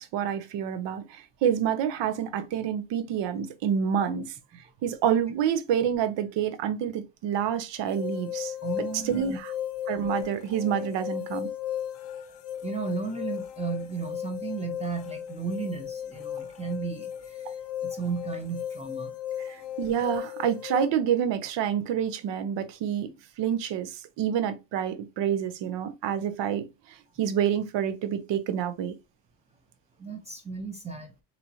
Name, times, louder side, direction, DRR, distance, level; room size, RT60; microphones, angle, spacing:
voice 1, 0.0-4.3 4.8-8.5 9.0-9.5 9.9-11.5 19.4-29.0, right 9 dB, 85° right, 0.8 m, -28 dB
sound 1, 7.9-20.9, left 10 dB, 80° left, 0.7 m, -36 dB
voice 2, 8.6-9.4 12.6-17.6 17.8-19.2 30.0-31.1, right 5 dB, 15° right, 0.5 m, -34 dB
4.1 x 3.0 x 2.7 m
cardioid pair, 165°, 42 cm